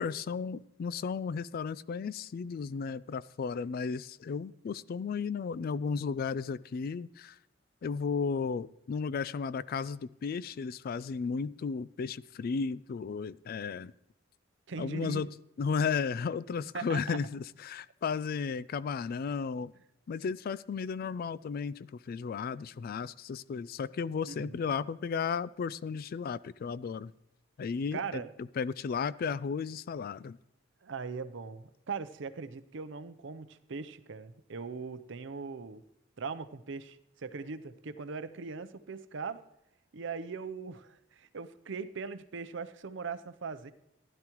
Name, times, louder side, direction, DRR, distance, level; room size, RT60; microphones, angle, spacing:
voice 1, 0.0-7.4 7.8-13.9 14.8-15.3 15.6-19.7 20.1-27.1 27.6-28.2 28.6-30.4, left 5 dB, 50° left, 19 dB, 0.3 m, -34 dB
voice 2, 14.7-15.2 16.7-17.0 24.3-24.6 27.9-28.3 30.8-35.8 36.2-39.4 39.9-43.7, right 5 dB, 65° right, 12 dB, 0.6 m, -40 dB
15.0 x 11.0 x 3.0 m, 0.86 s
head